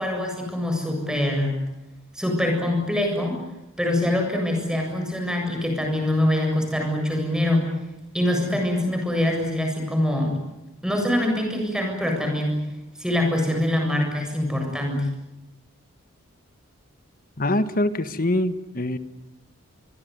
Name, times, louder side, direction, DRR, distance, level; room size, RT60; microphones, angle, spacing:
voice 1, 0.0-1.5 2.1-3.4 3.8-7.7 8.1-10.4 10.8-12.6 13.0-15.1, left 1 dB, 5° right, 2 dB, 7.5 m, -24 dB
voice 2, 17.4-19.0, left 1 dB, 45° left, 11 dB, 1.5 m, -24 dB
26.0 x 23.0 x 9.6 m, 0.93 s
head